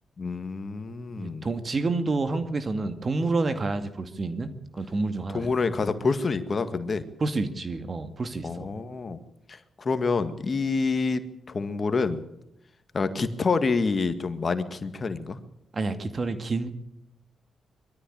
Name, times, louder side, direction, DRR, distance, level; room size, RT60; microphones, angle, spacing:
voice 1, 0.2-1.5 5.3-7.0 8.4-9.2 9.5-11.2 11.5-12.2 12.9-15.4, left 4 dB, 45° left, 10 dB, 1.9 m, -27 dB
voice 2, 1.2-4.5 4.8-5.5 7.2-8.7 15.7-16.7, right 3 dB, 45° right, 10 dB, 2.2 m, -28 dB
21.5 x 13.5 x 9.0 m, 0.83 s
supercardioid pair, 55°, 0 cm